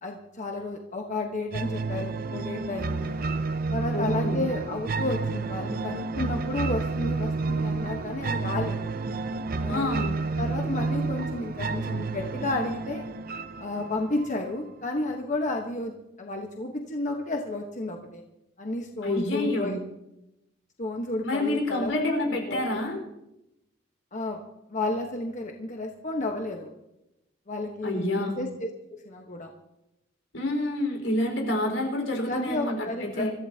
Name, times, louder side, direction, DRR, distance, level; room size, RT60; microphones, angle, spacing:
voice 1, 0.0-3.2 3.7-8.9 9.6-10.0 10.4-13.0 13.6-15.9 16.2-18.2 18.6-19.8 20.8-22.1 22.5-22.8 24.1-24.4 24.7-26.7 27.5-29.5 32.3-33.2, left 2 dB, 40° left, 2 dB, 1.2 m, -32 dB
sound 1, 1.5-14.5, right 3 dB, 50° right, 0.7 m, -30 dB
voice 2, 3.9-4.5 9.7-10.2 19.0-19.8 21.2-23.0 27.8-28.4 30.3-33.3, left 1 dB, 85° left, 2 dB, 4.6 m, -28 dB
25.5 x 14.5 x 2.9 m, 0.89 s
head